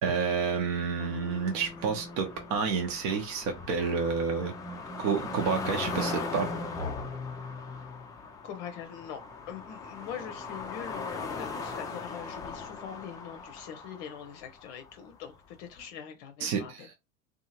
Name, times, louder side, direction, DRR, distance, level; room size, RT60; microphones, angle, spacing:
voice 1, 0.0-4.5 5.0-6.5 16.4-16.9, right 5 dB, 50° right, 0.8 m, -29 dB
sound 1, 1.0-15.1 15.8-15.9, left 3 dB, 10° left, 0.3 m, -39 dB
voice 2, 8.4-16.9, left 8 dB, 55° left, 0.6 m, -43 dB
2.7 x 2.4 x 2.8 m
hypercardioid pair, 95°, 41 cm